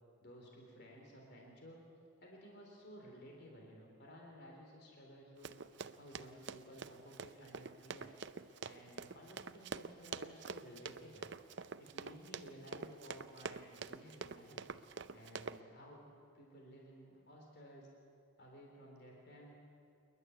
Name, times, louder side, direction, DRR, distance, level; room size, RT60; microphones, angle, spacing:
voice 1, 0.2-1.8 2.2-5.6 5.9-8.1 8.6-11.3 11.8-14.6 15.1-16.1 16.3-17.9 18.4-19.5, equal, 50° left, 0 dB, 3.5 m, -55 dB
Run, 5.4-15.6, right 5 dB, 55° right, 0.6 m, -46 dB
28.0 x 11.5 x 9.5 m, 2.4 s
head